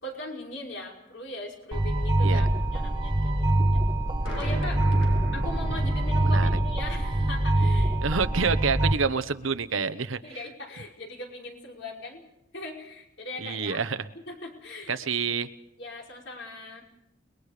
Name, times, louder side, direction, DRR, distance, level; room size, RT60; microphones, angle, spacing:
voice 1, 0.0-3.8 4.4-4.8 5.3-8.0 10.2-12.2 12.5-13.8 14.3-15.0 15.8-16.9, left 2 dB, 65° left, 0 dB, 5.4 m, -40 dB
sound 1, 1.7-8.9, right 1 dB, 25° right, 1.2 m, -24 dB
sound 2, 4.2-9.6, left 1 dB, 85° left, 7.3 m, -37 dB
voice 2, 8.0-10.3 13.4-14.1 14.9-15.5, right 5 dB, 80° right, 12 dB, 1.1 m, -28 dB
30.0 x 21.0 x 5.0 m, 0.81 s
head